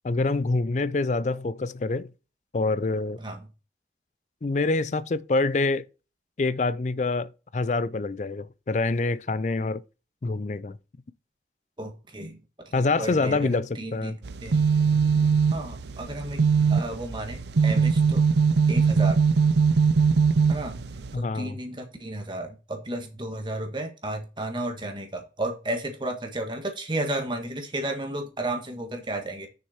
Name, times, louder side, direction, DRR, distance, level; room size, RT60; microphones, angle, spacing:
voice 1, 0.0-2.1 2.5-3.2 4.4-5.9 6.4-9.8 10.2-10.8 12.7-14.2 21.1-21.6, left 3 dB, 40° left, 0.4 m, -26 dB
voice 2, 11.8-12.4 13.0-13.5 13.7-14.6 15.5-18.2 18.7-19.2 20.5-20.7 21.1-29.5, right 1 dB, 25° right, 1.6 m, -33 dB
sound 1, 14.2-21.1, right 5 dB, 75° right, 0.5 m, -21 dB
6.6 x 6.3 x 4.4 m
head